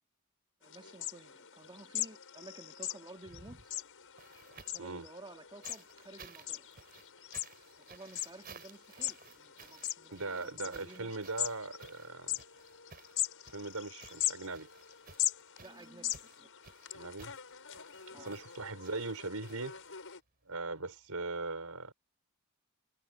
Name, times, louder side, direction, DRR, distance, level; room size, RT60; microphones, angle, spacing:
sound 1, 0.6-20.2, left 13 dB, 65° left, 6.6 m, -41 dB
voice 1, 0.6-3.6 4.7-6.7 7.8-11.1 15.6-16.5 18.1-18.3, right 2 dB, 20° right, 2.8 m, -53 dB
sound 2, 3.2-4.9 5.6-20.1 21.3-21.4, right 5 dB, 45° right, 4.3 m, -57 dB
voice 2, 10.1-12.4 13.5-14.7 16.9-17.3 18.1-19.8 20.5-21.9, right 3 dB, 75° right, 5.1 m, -40 dB
head